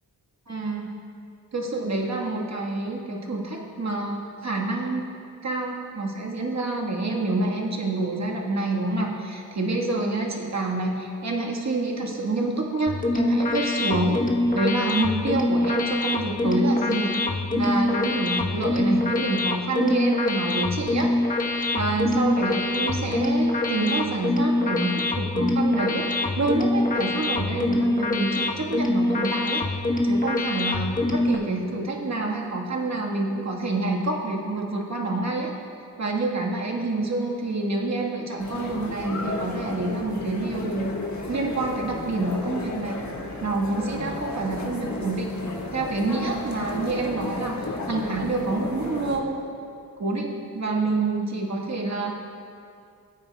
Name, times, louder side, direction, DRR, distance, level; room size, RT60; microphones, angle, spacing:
voice 1, 0.5-0.9 1.5-5.0 5.4-14.2 14.5-17.1 17.5-21.1 21.7-29.6 30.0-35.5 36.0-40.9 41.3-43.0 43.4-45.3 45.7-49.5 50.0-52.3, right 2 dB, 45° right, 0 dB, 1.5 m, -27 dB
sound 1, 12.9-31.4, left 2 dB, 20° left, 1.1 m, -24 dB
sound 2, 38.4-49.2, left 2 dB, 50° left, 1.4 m, -34 dB
16.0 x 8.5 x 2.3 m, 2.5 s
cardioid pair, 55°, 37 cm